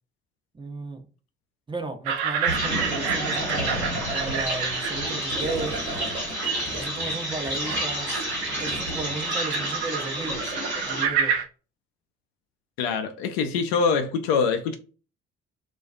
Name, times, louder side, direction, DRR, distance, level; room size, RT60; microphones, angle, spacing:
voice 1, 0.5-1.1 1.7-5.8 6.8-8.2 8.6-10.5 10.8-11.4, right 3 dB, 15° right, 0.6 m, -34 dB
sound 1, 2.0-11.4, right 7 dB, 65° right, 0.5 m, -31 dB
sound 2, 2.5-11.1, right 1 dB, 90° right, 1.0 m, -30 dB
Gurgling, 5.4-9.2 9.5-9.8, right 2 dB, 35° right, 1.0 m, -40 dB
voice 2, 12.8-14.8, left 5 dB, 70° left, 0.5 m, -24 dB
2.3 x 2.1 x 2.5 m
figure-of-eight pair, 40°, 32 cm